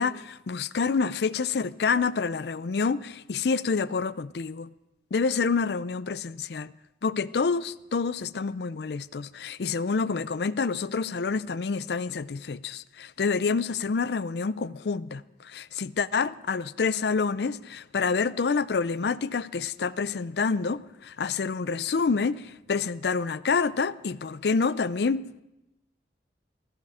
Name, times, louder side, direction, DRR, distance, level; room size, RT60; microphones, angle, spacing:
voice 1, 0.0-4.7 5.1-6.7 7.0-25.4, left 5 dB, 65° left, 0.5 m, -28 dB
16.5 x 14.0 x 4.9 m
head